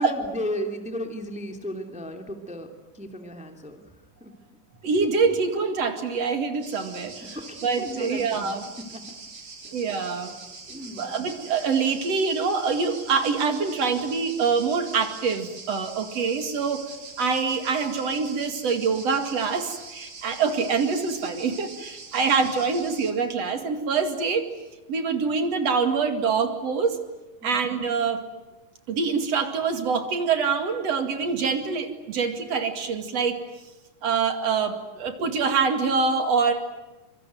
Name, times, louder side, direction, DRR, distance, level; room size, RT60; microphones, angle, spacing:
voice 1, 0.0-2.7 2.9-3.8 4.2-4.3 7.3-8.6 8.9-9.0 9.6-9.7 10.7-11.1 27.4-27.6, equal, ahead, 5 dB, 2.3 m, -34 dB
voice 2, 4.8-7.4 7.6-8.6 9.7-10.3 11.0-16.9 17.2-24.4 24.9-27.0 27.4-28.2 28.9-33.4 34.0-36.5, right 5 dB, 50° right, 7 dB, 3.2 m, -25 dB
sound 1, 6.6-23.1, right 4 dB, 35° right, 3.4 m, -43 dB
25.5 x 24.0 x 9.3 m, 1.1 s
omnidirectional pair, 3.7 m